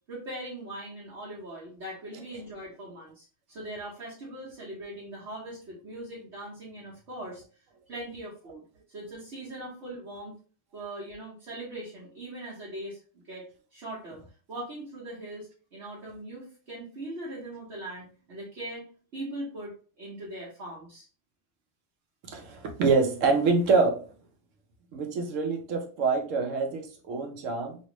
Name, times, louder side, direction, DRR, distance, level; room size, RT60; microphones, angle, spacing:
voice 1, 0.1-7.4 7.9-10.3 10.7-13.0 13.2-13.5 13.7-14.2 14.5-18.8 19.1-21.0, right 1 dB, 65° right, -7 dB, 1.3 m, -40 dB
voice 2, 22.3-24.0 24.9-27.8, right 4 dB, 85° right, 4 dB, 1.1 m, -26 dB
3.2 x 2.5 x 3.0 m, 0.39 s
omnidirectional pair, 1.3 m